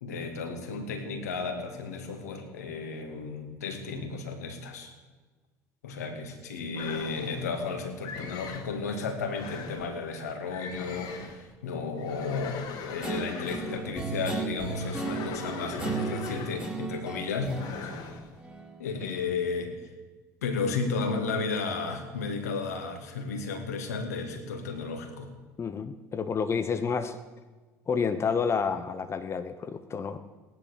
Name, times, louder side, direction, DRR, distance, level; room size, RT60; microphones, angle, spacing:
voice 1, 0.0-4.9 5.8-17.5 17.8-17.9 18.8-19.7 20.4-25.3, left 4 dB, 80° left, 4 dB, 2.3 m, -33 dB
sound 1, 6.7-7.5 8.0-8.8 9.3-9.9 10.5-11.5 12.0-13.9 14.7-16.9 17.5-18.3, left 5 dB, 55° left, 2.3 m, -41 dB
Guitar, 13.0-18.8, right 4 dB, 15° right, 3.6 m, -35 dB
voice 2, 25.6-27.2 27.9-30.2, left 6 dB, 30° left, 9 dB, 1.1 m, -29 dB
17.5 x 11.0 x 6.9 m, 1.3 s
hypercardioid pair, 65°, 8 cm